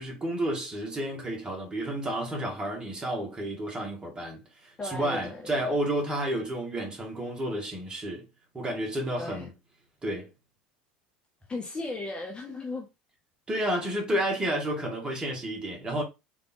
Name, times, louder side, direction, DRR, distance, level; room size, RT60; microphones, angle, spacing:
voice 1, 0.0-8.2 8.5-9.5 10.0-10.3 13.5-16.0, right 1 dB, 20° right, 2.0 m, -31 dB
voice 2, 4.8-5.8 9.2-9.5 11.5-12.9, left 2 dB, 20° left, 0.9 m, -36 dB
3.7 x 3.6 x 2.9 m
figure-of-eight pair, 75°, 5 cm